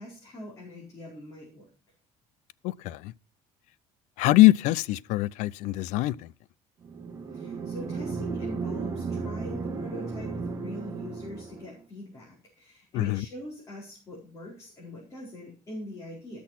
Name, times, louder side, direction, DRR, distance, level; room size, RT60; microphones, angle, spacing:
voice 1, 0.0-1.7 7.3-16.4, left 1 dB, 25° left, 4.5 m, -42 dB
voice 2, 2.6-3.1 4.2-6.3 12.9-13.2, left 18 dB, 75° left, 0.5 m, -23 dB
sound 1, 6.8-11.8, right 4 dB, 25° right, 1.6 m, -34 dB
15.0 x 6.3 x 5.8 m
cardioid pair, 140°, 12 cm